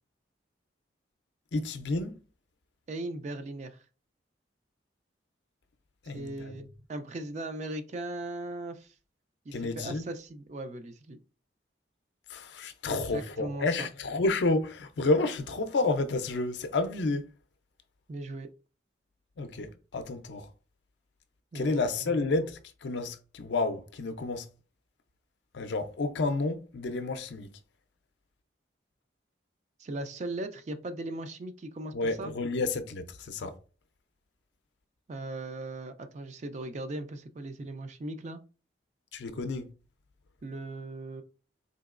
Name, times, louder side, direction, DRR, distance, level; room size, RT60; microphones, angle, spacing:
voice 1, 1.5-2.2 6.1-6.5 9.5-10.0 12.3-17.2 19.4-20.5 21.5-24.5 25.5-27.5 31.9-33.5 39.1-39.7, left 3 dB, 75° left, 0.5 m, -30 dB
voice 2, 2.9-3.8 6.1-6.6 6.9-8.9 9.5-11.2 12.9-13.9 18.1-18.5 21.5-22.2 29.8-32.3 35.1-38.4 40.4-41.2, right 2 dB, 40° right, 0.3 m, -38 dB
3.9 x 2.9 x 2.4 m
head